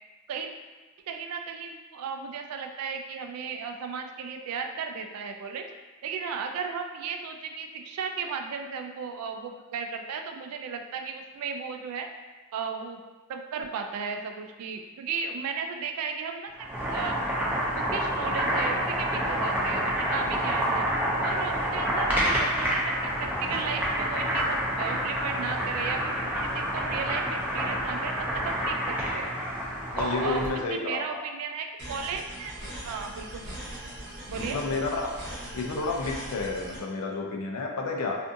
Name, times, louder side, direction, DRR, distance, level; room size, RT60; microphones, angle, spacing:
voice 1, 1.1-5.7 6.0-12.1 12.5-13.0 13.3-17.2 17.7-20.9 21.2-29.3 29.9-33.5 34.3-34.6, right 5 dB, 70° right, 8 dB, 0.3 m, -35 dB
Boiling, 16.5-30.6, equal, 10° right, 0.4 m, -28 dB
voice 2, 29.9-31.2 34.4-35.1 35.5-38.2, left 3 dB, 80° left, 1 dB, 0.4 m, -31 dB
sound 1, 31.8-36.8, right 1 dB, 50° right, 0.8 m, -40 dB
2.5 x 2.5 x 2.5 m, 1.2 s
head